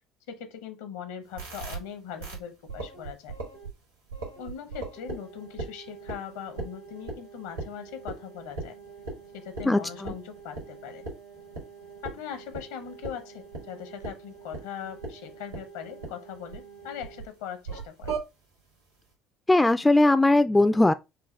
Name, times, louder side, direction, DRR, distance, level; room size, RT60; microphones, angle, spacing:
voice 1, 0.3-3.4 4.4-8.8 9.3-11.0 12.0-18.2, left 8 dB, 65° left, 0.7 m, -40 dB
sound 1, 1.4-1.8 2.2-2.4 2.7-3.7 4.1-17.2 17.7-18.2, right 3 dB, 80° right, 1.7 m, -40 dB
voice 2, 9.7-10.1 19.5-20.9, left 2 dB, 10° left, 0.3 m, -20 dB
5.5 x 2.3 x 3.1 m
figure-of-eight pair, 55°, 0 cm